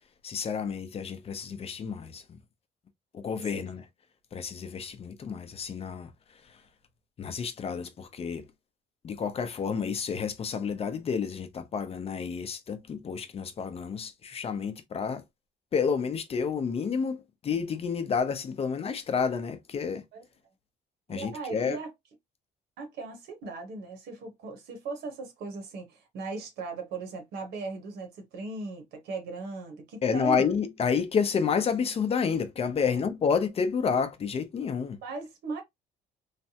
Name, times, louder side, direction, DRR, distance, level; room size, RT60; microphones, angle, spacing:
voice 1, 0.2-2.2 3.1-3.8 4.3-6.1 6.4-6.6 7.2-8.5 9.0-15.2 15.7-20.0 21.1-21.8 30.0-35.0, left 6 dB, 35° left, 0.6 m, -30 dB
voice 2, 21.1-21.9 22.8-30.5 32.8-32.9 35.0-35.6, right 3 dB, 75° right, 1.1 m, -38 dB
3.2 x 2.1 x 2.8 m
cardioid pair, 110°, 17 cm